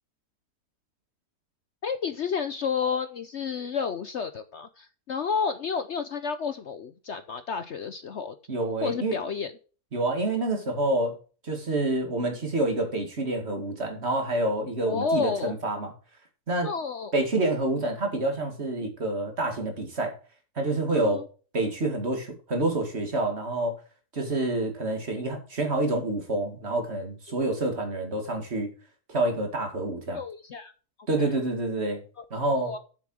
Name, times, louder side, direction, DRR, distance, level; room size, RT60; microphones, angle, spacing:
voice 1, 1.8-8.3 8.8-9.5 14.9-15.5 16.6-17.1 20.9-21.3 30.1-30.7 31.2-31.3 32.2-32.8, left 5 dB, 55° left, 11 dB, 0.9 m, -31 dB
voice 2, 8.5-9.1 9.9-11.2 11.4-15.9 16.5-16.7 17.1-20.2 20.6-21.2 21.5-23.8 24.1-28.7 29.1-30.2 31.1-32.0 32.3-32.7, right 2 dB, 45° right, 3 dB, 2.4 m, -27 dB
7.7 x 7.0 x 6.2 m, 0.37 s
omnidirectional pair, 1.6 m